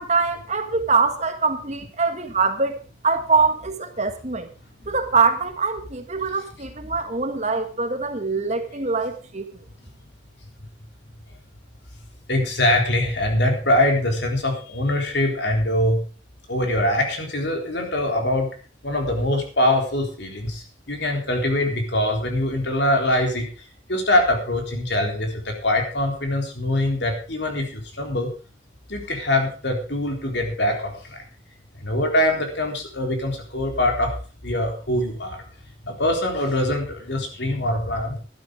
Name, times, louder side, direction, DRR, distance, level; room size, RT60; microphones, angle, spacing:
voice 1, 0.0-2.8 3.0-4.5 4.9-9.5, right 4 dB, 35° right, 7 dB, 1.6 m, -23 dB
voice 2, 12.3-16.0 16.5-18.5 18.8-23.5 23.9-28.3 28.9-31.2 31.8-34.1 34.4-35.4 35.9-38.2, left 1 dB, 60° left, 3 dB, 3.8 m, -23 dB
12.0 x 12.0 x 5.0 m, 0.37 s
head